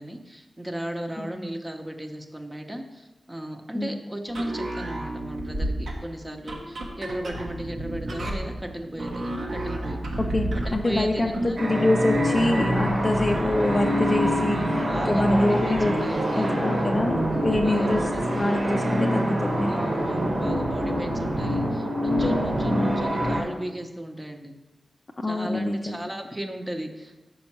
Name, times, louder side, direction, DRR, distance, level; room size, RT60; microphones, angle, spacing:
voice 1, 0.0-10.0 10.6-11.6 13.3-13.5 14.3-15.7 16.0-16.5 17.2-18.1 19.7-24.5 25.3-27.3, right 1 dB, 15° right, 4 dB, 0.8 m, -35 dB
sound 1, 4.3-11.6, right 1 dB, 80° right, 1.1 m, -31 dB
voice 2, 10.2-11.3 11.6-14.6 14.9-15.9 16.3-19.9 25.2-26.0, left 2 dB, 30° left, 2 dB, 0.5 m, -25 dB
sound 2, 11.6-23.4, equal, 60° right, 1.4 m, -25 dB
5.4 x 5.1 x 6.0 m, 1.1 s
wide cardioid pair, 80°, 0 cm